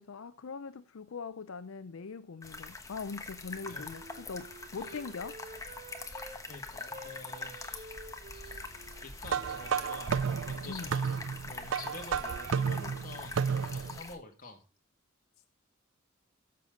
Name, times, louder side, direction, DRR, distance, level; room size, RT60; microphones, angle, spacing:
voice 1, 0.0-5.4 10.7-10.9, left 5 dB, 80° left, 0.5 m, -42 dB
sound 1, 2.4-14.1, left 3 dB, 15° left, 1.1 m, -44 dB
Wind instrument woodwind instrument, 3.4-6.4 6.9-10.7, right 2 dB, 40° right, 1.0 m, -51 dB
voice 2, 6.1-8.0 8.3-8.6 9.0-14.7, left 3 dB, 40° left, 1.9 m, -49 dB
sound 2, 9.2-14.0, right 6 dB, 65° right, 0.4 m, -32 dB
13.5 x 6.8 x 3.7 m
head